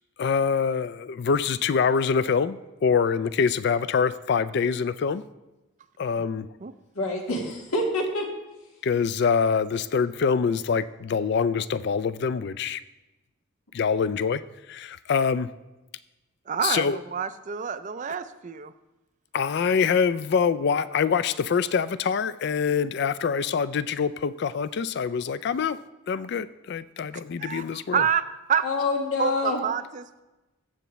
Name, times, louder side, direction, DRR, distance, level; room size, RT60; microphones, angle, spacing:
voice 1, 0.2-5.2 6.0-6.4 8.8-12.8 13.7-14.4 14.7-15.5 16.6-17.0 19.3-25.8 26.1-28.0, left 6 dB, 50° left, 15 dB, 0.3 m, -25 dB
voice 2, 6.9-8.3 28.6-29.6, left 2 dB, 90° left, 1 dB, 1.7 m, -26 dB
voice 3, 16.5-18.7 27.4-28.7 29.2-30.2, right 7 dB, 35° right, 12 dB, 0.4 m, -28 dB
15.0 x 6.7 x 3.1 m, 1.0 s
head